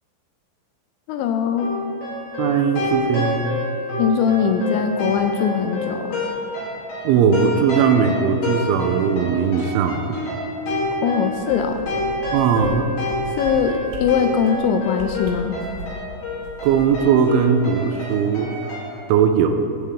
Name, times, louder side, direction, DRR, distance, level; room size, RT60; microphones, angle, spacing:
voice 1, 1.1-1.8 4.0-6.1 11.0-11.9 13.4-15.6, left 7 dB, 80° left, 6 dB, 2.7 m, -21 dB
sound 1, 1.6-19.0, left 2 dB, 55° left, 4.6 m, -28 dB
voice 2, 2.4-3.4 7.0-10.2 12.3-12.9 16.6-18.5 19.1-19.6, right 7 dB, 85° right, 7 dB, 3.1 m, -19 dB
sound 2, 11.2-12.3 12.6-12.7 13.0-13.5 13.9-14.0 14.4-14.6 14.9-16.0 16.4-18.0 18.4-18.5, right 2 dB, 65° right, 2.8 m, -37 dB
17.0 x 8.5 x 3.6 m, 2.6 s
omnidirectional pair, 5.6 m